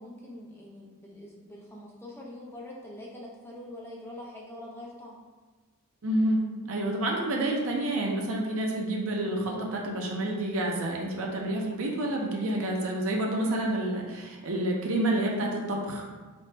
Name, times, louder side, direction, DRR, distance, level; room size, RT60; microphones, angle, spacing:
voice 1, 0.0-5.2, left 1 dB, 10° left, -3 dB, 0.5 m, -44 dB
voice 2, 6.0-16.3, right 1 dB, 65° right, -1 dB, 0.5 m, -29 dB
4.1 x 2.1 x 3.2 m, 1.4 s
head